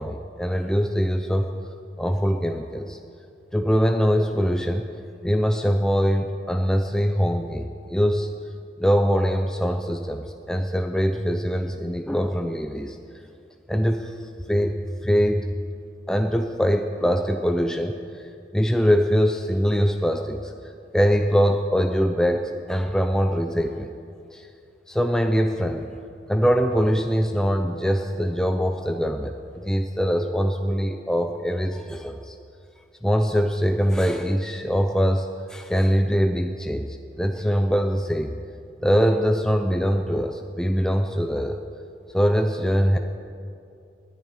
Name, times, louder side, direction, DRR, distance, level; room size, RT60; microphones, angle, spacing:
voice 1, 0.0-1.5 2.0-3.0 3.5-4.9 5.2-8.3 8.8-13.0 13.7-15.7 16.1-18.0 18.5-20.5 20.9-23.9 24.3-24.5 24.9-25.9 26.3-29.3 29.6-32.3 33.0-38.4 38.8-41.6 42.1-43.0, equal, 5° left, 5 dB, 0.4 m, -23 dB
10.5 x 9.6 x 9.9 m, 2.4 s
head